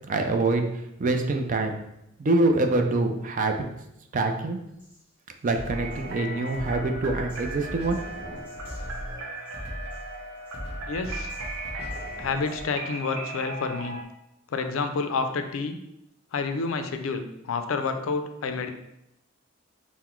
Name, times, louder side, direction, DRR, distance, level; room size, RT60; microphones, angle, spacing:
voice 1, 0.1-1.8 2.2-3.7 4.1-4.6 5.4-8.0, right 2 dB, 40° right, 5 dB, 0.4 m, -25 dB
Drum kit, 4.8-5.0 5.5-12.6, equal, 5° right, 1.0 m, -39 dB
sound 1, 5.7-14.0, right 1 dB, 80° right, 0.6 m, -38 dB
voice 2, 10.8-11.3 12.2-14.0 14.5-15.8 16.3-18.7, left 4 dB, 70° left, 8 dB, 0.4 m, -29 dB
3.9 x 2.1 x 4.3 m, 0.85 s
head